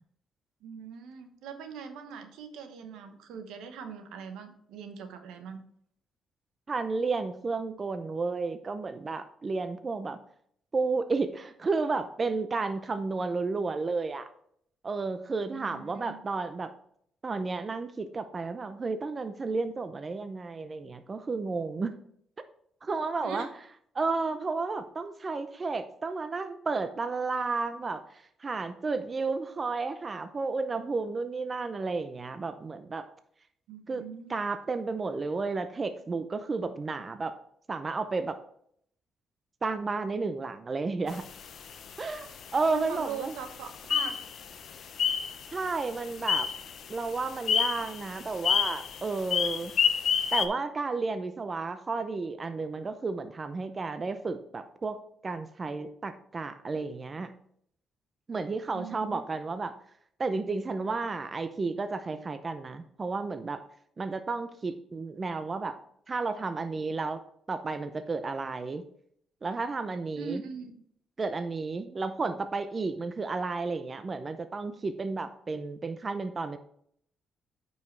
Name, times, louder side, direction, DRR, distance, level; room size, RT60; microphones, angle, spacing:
voice 1, 0.6-5.6 15.5-16.2 23.2-23.5 33.7-34.4 42.7-44.1 58.7-59.2 70.1-70.7, right 6 dB, 90° right, 7 dB, 1.0 m, -41 dB
voice 2, 6.7-10.2 10.7-14.3 14.8-16.7 17.2-21.9 22.8-23.5 23.9-33.1 33.9-34.0 34.3-37.4 37.7-38.4 39.6-41.2 42.0-43.4 45.5-46.5 46.9-49.7 50.3-55.0 55.2-57.3 58.3-59.7 60.2-63.6 64.0-65.8 66.1-67.2 67.5-68.8 69.4-70.4 71.2-76.6, right 4 dB, 35° right, 10 dB, 0.5 m, -32 dB
sound 1, 41.1-50.5, left 8 dB, 60° left, 0.8 m, -31 dB
9.0 x 5.4 x 3.2 m, 0.67 s
cardioid pair, 90°, 0 cm